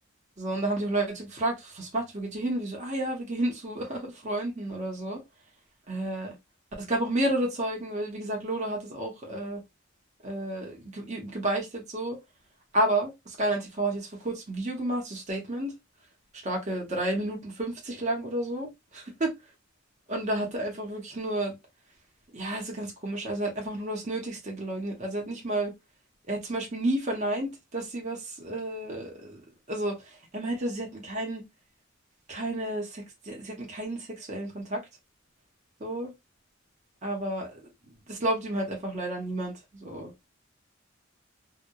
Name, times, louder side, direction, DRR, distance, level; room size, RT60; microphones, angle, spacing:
voice 1, 0.4-5.2 5.9-6.3 6.8-9.6 10.2-12.2 12.7-15.7 16.4-19.3 20.1-21.5 22.3-25.7 26.3-31.4 32.3-34.8 35.8-36.1 37.0-37.6 38.1-40.1, right 1 dB, 35° right, 0.7 m, -31 dB
2.7 x 2.0 x 2.2 m
head